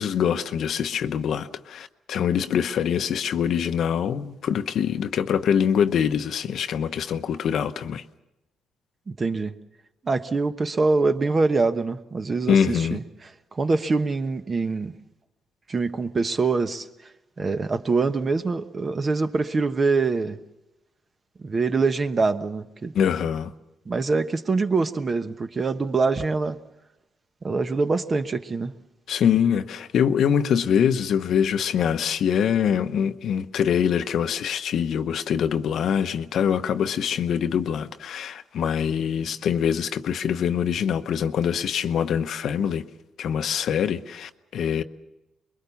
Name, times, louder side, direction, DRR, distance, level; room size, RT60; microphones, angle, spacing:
voice 1, 0.0-8.0 12.5-13.0 22.9-23.5 29.1-42.9 43.2-44.8, left 8 dB, 70° left, 0.9 m, -24 dB
voice 2, 9.1-9.5 10.0-13.0 13.5-14.9 15.7-16.9 17.4-20.4 21.4-22.9 23.9-26.6 27.4-28.7, right 4 dB, 35° right, 1.1 m, -24 dB
24.5 x 22.0 x 7.1 m
cardioid pair, 90°, 0 cm